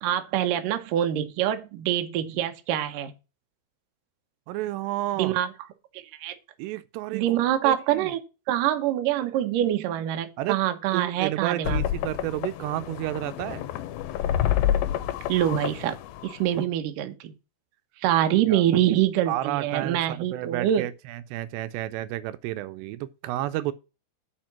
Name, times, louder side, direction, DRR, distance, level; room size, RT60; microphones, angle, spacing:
voice 1, 0.0-3.1 5.2-5.5 5.9-6.3 7.1-8.2 8.5-11.8 15.3-16.0 16.2-17.3 18.0-20.9, right 11 dB, 70° right, 2.2 m, -25 dB
voice 2, 4.5-5.4 6.6-8.1 10.4-10.6 10.9-13.6 18.5-18.6 19.3-23.7, right 15 dB, 85° right, 2.7 m, -31 dB
sound 1, 11.6-16.6, left 11 dB, 80° left, 2.3 m, -28 dB
7.5 x 5.1 x 7.3 m
omnidirectional pair, 4.9 m